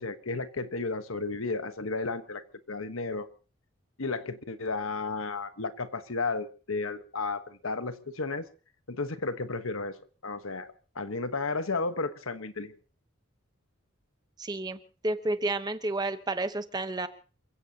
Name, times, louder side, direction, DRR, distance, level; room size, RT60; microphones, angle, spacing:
voice 1, 0.0-2.4 2.7-3.3 4.0-8.5 8.9-10.0 10.2-10.7 10.9-12.7, left 3 dB, 80° left, 10 dB, 1.3 m, -33 dB
voice 2, 14.4-17.1, right 2 dB, 20° right, 10 dB, 1.0 m, -31 dB
28.5 x 16.0 x 2.9 m, 0.36 s
head